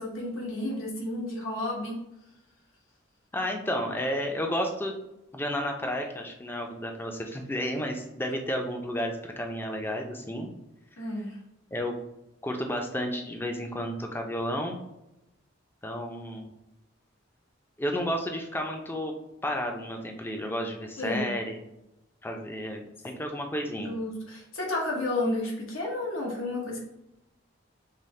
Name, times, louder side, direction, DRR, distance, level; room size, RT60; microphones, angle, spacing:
voice 1, 0.0-2.0 11.0-11.4 21.0-21.4 23.7-26.8, left 1 dB, 90° left, -2 dB, 1.1 m, -31 dB
voice 2, 3.3-4.9 5.3-10.5 11.7-11.9 12.4-14.8 15.8-16.5 17.8-19.1 19.4-21.6 22.2-24.0, equal, 10° left, 3 dB, 0.4 m, -32 dB
5.5 x 2.1 x 3.1 m, 0.89 s
head